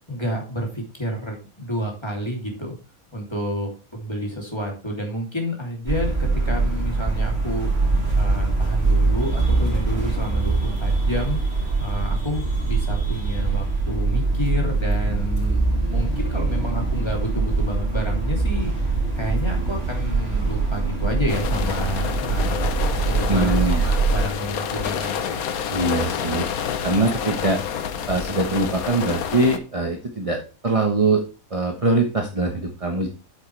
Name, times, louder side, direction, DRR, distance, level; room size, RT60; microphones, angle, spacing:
voice 1, 0.1-2.8 3.1-7.7 8.1-18.7 19.1-22.7 23.0-25.4, equal, 20° left, 0 dB, 2.9 m, -30 dB
sound 1, 5.9-24.2, right 3 dB, 45° right, 3.4 m, -23 dB
sound 2, 21.3-29.6, left 8 dB, 90° left, 1.3 m, -28 dB
voice 2, 23.3-23.8 25.7-26.5 26.8-27.6 28.1-31.2 31.5-33.1, right 2 dB, 25° right, 3 dB, 1.1 m, -22 dB
8.1 x 7.7 x 3.3 m, 0.33 s
omnidirectional pair, 1.5 m